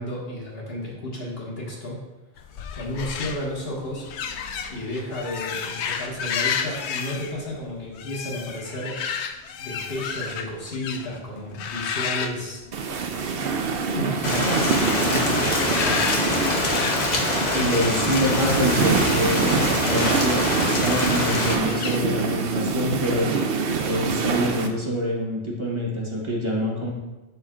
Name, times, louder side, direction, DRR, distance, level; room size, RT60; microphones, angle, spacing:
voice 1, 0.0-2.0 2.7-4.1 4.7-9.0 9.6-12.6 13.9-16.1, left 1 dB, 60° left, -4 dB, 1.8 m, -32 dB
sound 1, 2.4-11.2 11.5-13.3 13.5-13.9 14.6-18.0 18.9-22.0, left 6 dB, 80° left, 0.8 m, -32 dB
sound 2, 12.7-24.7, right 5 dB, 65° right, 0.8 m, -25 dB
Rain, 14.2-21.6, left 2 dB, 40° left, 1.0 m, -25 dB
voice 2, 17.5-23.3 23.8-26.9, equal, 25° right, -3 dB, 1.3 m, -26 dB
11.5 x 4.3 x 2.5 m, 1.1 s
omnidirectional pair, 1.1 m